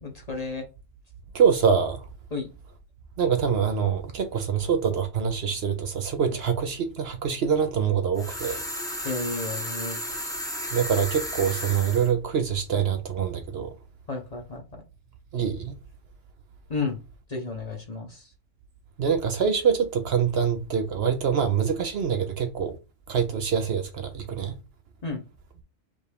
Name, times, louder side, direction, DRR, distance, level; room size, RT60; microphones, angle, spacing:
voice 1, 0.0-0.6 2.3-2.5 9.0-10.0 14.1-14.6 16.7-17.0 17.3-18.3 25.0-25.2, left 3 dB, 35° left, 0.8 m, -32 dB
voice 2, 1.3-2.0 3.2-8.6 10.7-13.7 15.3-15.7 19.0-22.8 23.1-24.5, right 7 dB, 60° right, 0.8 m, -25 dB
sound 1, 8.2-12.1, equal, 5° left, 0.7 m, -33 dB
5.1 x 2.5 x 3.3 m
omnidirectional pair, 1.3 m